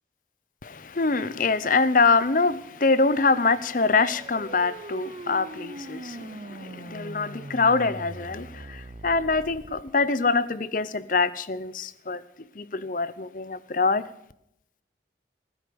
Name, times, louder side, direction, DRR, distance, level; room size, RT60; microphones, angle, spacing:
voice 1, 0.6-14.0, left 4 dB, 45° left, 0.7 m, -24 dB
sound 1, 3.0-9.9, right 2 dB, 35° right, 0.6 m, -42 dB
16.5 x 10.0 x 6.9 m
head